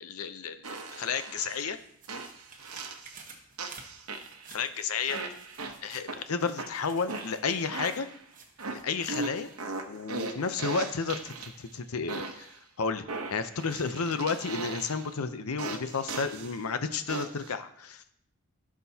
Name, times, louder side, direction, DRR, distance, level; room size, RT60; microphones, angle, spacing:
voice 1, 0.0-1.8 4.5-5.2 5.8-8.1 8.7-9.5 9.9-12.5 12.8-18.0, left 5 dB, 85° left, 10 dB, 0.7 m, -32 dB
sound 1, 0.6-1.6 2.1-3.2 3.6-4.5 5.1-6.2 6.6-8.2 8.6-11.7 12.1-12.6 13.1-15.1 15.6-16.6 17.1-17.5, right 3 dB, 90° right, 1.0 m, -38 dB
sound 2, 1.3-10.0 10.5-10.6, right 4 dB, 40° right, 1.3 m, -53 dB
15.5 x 6.0 x 2.8 m, 0.69 s
head